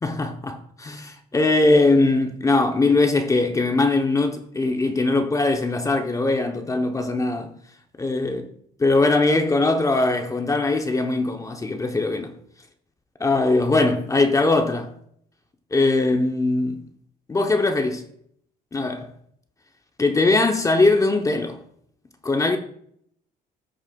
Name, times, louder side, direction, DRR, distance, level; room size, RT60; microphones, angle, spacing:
voice 1, 0.0-7.5 8.0-8.4 8.8-12.3 13.2-14.9 15.7-16.8 17.3-18.0 18.7-19.1 20.0-21.6 22.2-22.6, left 2 dB, 20° left, 0.7 m, -21 dB
14.5 x 6.3 x 2.3 m
cardioid pair, 110°, 17 cm